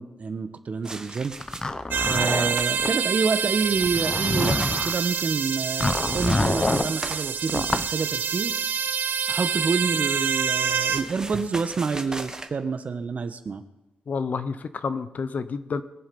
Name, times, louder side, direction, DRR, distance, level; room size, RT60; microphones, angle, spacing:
voice 1, 0.0-1.3 2.0-8.5 9.3-13.6, right 5 dB, 45° right, 10 dB, 1.2 m, -28 dB
sound 1, 0.8-1.8 2.1-2.8 3.1-8.3 9.6-12.5, right 2 dB, 20° right, 1.5 m, -40 dB
Zipper (clothing), 1.4-2.9 3.8-5.0 5.8-6.9 7.5-7.9, left 2 dB, 20° left, 0.8 m, -26 dB
sound 2, 1.9-11.0, right 7 dB, 75° right, 0.9 m, -27 dB
voice 2, 14.1-15.8, left 5 dB, 50° left, 12 dB, 0.9 m, -29 dB
22.0 x 7.5 x 5.4 m, 0.96 s
cardioid pair, 90°, 3 cm